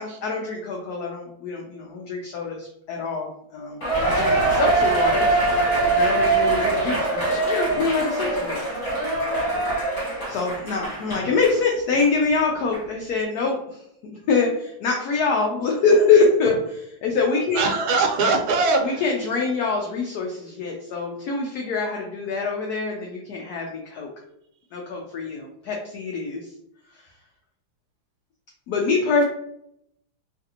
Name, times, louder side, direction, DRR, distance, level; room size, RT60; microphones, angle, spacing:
voice 1, 0.0-5.4 5.9-8.7 10.3-13.8 14.3-17.6 18.8-24.1 24.7-26.5 28.7-29.2, left 4 dB, 90° left, 0 dB, 0.8 m, -24 dB
Cheering, 3.8-11.6 12.0-12.1 12.7-12.8, right 2 dB, 50° left, 1.3 m, -23 dB
voice 2, 17.5-19.1, right 3 dB, 80° right, 2 dB, 1.4 m, -21 dB
3.2 x 2.5 x 2.7 m, 0.76 s
omnidirectional pair, 2.2 m